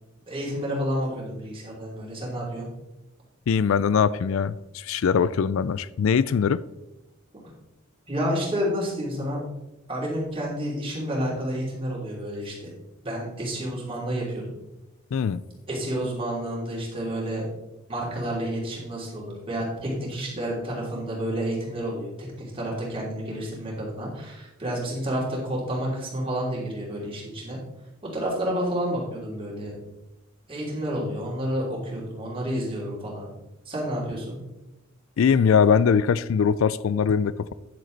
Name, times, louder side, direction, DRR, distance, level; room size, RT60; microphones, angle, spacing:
voice 1, 0.3-2.7 8.1-9.4 9.9-12.5 13.0-14.5 15.7-17.4 17.9-22.3 22.5-27.6 28.1-29.7 30.5-33.3 33.6-34.4, equal, 25° right, -5 dB, 3.1 m, -30 dB
voice 2, 3.5-6.6 15.1-15.4 35.2-37.5, left 6 dB, 70° left, 17 dB, 0.4 m, -21 dB
9.5 x 7.5 x 4.0 m, 0.96 s
head